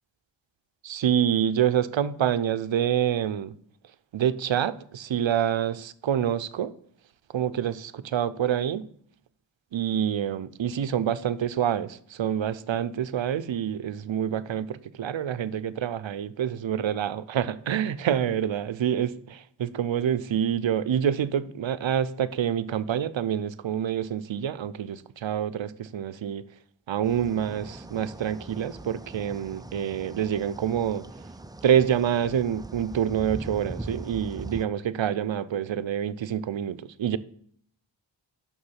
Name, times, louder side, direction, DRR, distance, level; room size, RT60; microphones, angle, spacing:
voice 1, 0.8-3.6 4.1-6.7 7.3-8.9 9.7-26.5 26.9-31.1 31.6-37.2, right 9 dB, 75° right, 0.7 m, -27 dB
sound 1, 27.0-34.7, right 2 dB, 10° right, 0.4 m, -41 dB
6.8 x 6.1 x 7.3 m
wide cardioid pair, 70°, 46 cm